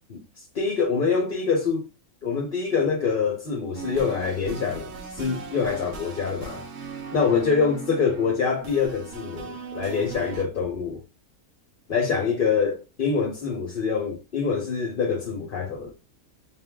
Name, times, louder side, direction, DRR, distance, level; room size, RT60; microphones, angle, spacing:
voice 1, 0.5-1.8 2.2-6.6 7.1-11.0 11.9-15.9, left 5 dB, 45° left, 0.7 m, -25 dB
sound 1, 3.7-10.4, right 5 dB, 60° right, 1.1 m, -39 dB
4.0 x 2.5 x 3.7 m
omnidirectional pair, 1.6 m